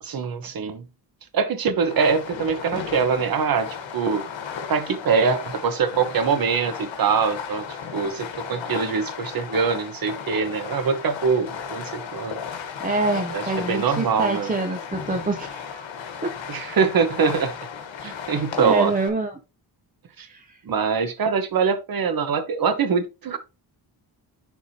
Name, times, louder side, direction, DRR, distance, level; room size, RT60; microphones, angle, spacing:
voice 1, 0.0-0.9 1.3-4.3 4.7-12.4 13.3-14.5 16.5-17.5 18.0-18.9 20.2-20.3 20.6-23.4, right 5 dB, 50° right, 1.1 m, -23 dB
Fireworks, 1.8-19.1, left 7 dB, 85° left, 1.3 m, -35 dB
voice 2, 12.8-15.8 16.2-16.3 18.6-19.4 20.2-20.6, right 2 dB, 20° right, 0.6 m, -26 dB
10.5 x 3.5 x 2.8 m
wide cardioid pair, 175°, 44 cm